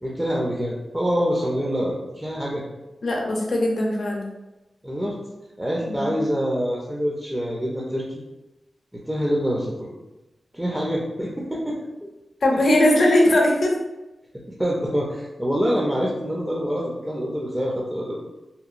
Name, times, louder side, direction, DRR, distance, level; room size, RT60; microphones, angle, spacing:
voice 1, 0.0-2.6 4.8-5.2 5.6-8.2 8.9-9.9 10.5-11.8 12.0-12.1 14.6-18.2, equal, 10° right, -4 dB, 0.4 m, -25 dB
voice 2, 3.0-4.3 5.9-6.2 12.4-13.7, left 1 dB, 65° left, -1 dB, 0.5 m, -19 dB
2.8 x 2.1 x 2.4 m, 1.0 s
wide cardioid pair, 85°, 0 cm